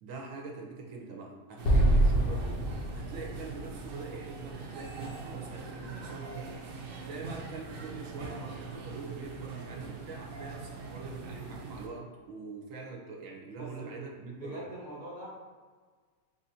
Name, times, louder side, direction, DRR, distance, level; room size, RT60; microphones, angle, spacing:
voice 1, 0.0-6.5 7.0-14.6, right 4 dB, 65° right, -1 dB, 1.0 m, -44 dB
Explosion, 1.6-4.9, right 1 dB, 65° left, 0.5 m, -27 dB
sound 1, 1.6-11.9, right 4 dB, 90° right, 0.5 m, -42 dB
voice 2, 13.6-15.3, right 1 dB, 45° right, -6 dB, 0.6 m, -43 dB
4.7 x 2.5 x 2.7 m, 1.5 s
omnidirectional pair, 1.6 m